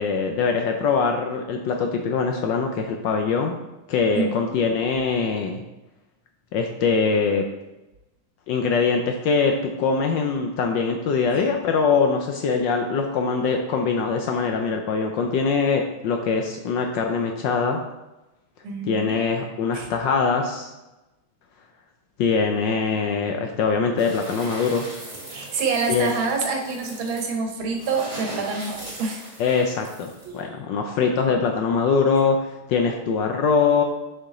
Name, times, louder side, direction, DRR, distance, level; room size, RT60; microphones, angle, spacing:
voice 1, 0.0-3.6 3.9-5.6 6.5-7.4 8.5-17.8 18.9-20.7 22.2-24.8 25.9-26.1 29.4-33.8, left 5 dB, 70° left, 3 dB, 1.1 m, -23 dB
voice 2, 4.1-4.6 11.3-11.4 18.6-19.2 19.7-19.9 25.3-29.2 30.2-30.3, right 4 dB, 65° right, 3 dB, 1.7 m, -27 dB
sound 1, 24.0-30.4, right 1 dB, 15° right, 1.3 m, -39 dB
6.8 x 4.9 x 3.7 m, 1.0 s
omnidirectional pair, 2.4 m